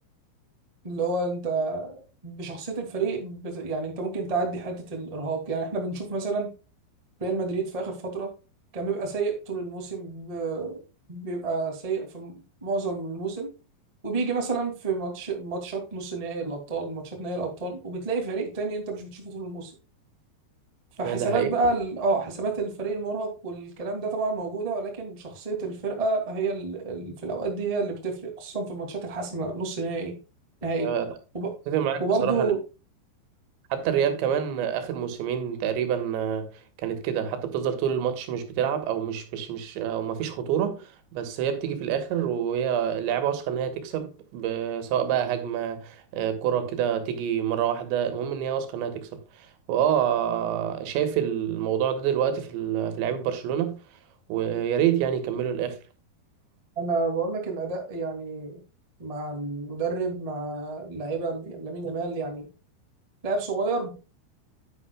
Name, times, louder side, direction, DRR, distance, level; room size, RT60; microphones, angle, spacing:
voice 1, 0.8-6.5 7.2-8.3 8.7-10.8 11.1-13.5 14.0-19.7 21.0-30.1 30.6-30.9 31.3-31.5 32.0-32.6 56.7-58.6 59.0-62.5 63.2-63.9, right 3 dB, 15° right, 1.2 m, -30 dB
voice 2, 21.0-21.5 30.8-31.1 31.7-32.5 33.7-53.8 54.3-55.8, right 9 dB, 85° right, 3.7 m, -27 dB
10.0 x 9.7 x 2.3 m
omnidirectional pair, 5.1 m